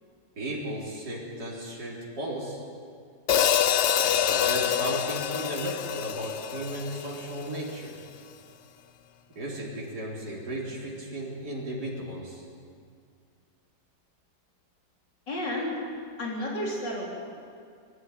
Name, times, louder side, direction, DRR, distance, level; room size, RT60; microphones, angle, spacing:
voice 1, 0.4-2.6 4.0-7.9 9.4-12.4, right 1 dB, 65° right, -5 dB, 4.5 m, -35 dB
Hi-hat, 3.3-7.6, left 9 dB, 60° left, 0.7 m, -26 dB
voice 2, 15.3-15.8 16.2-17.1, left 1 dB, 80° left, -3 dB, 4.5 m, -31 dB
21.5 x 16.0 x 9.3 m, 2.2 s
omnidirectional pair, 1.9 m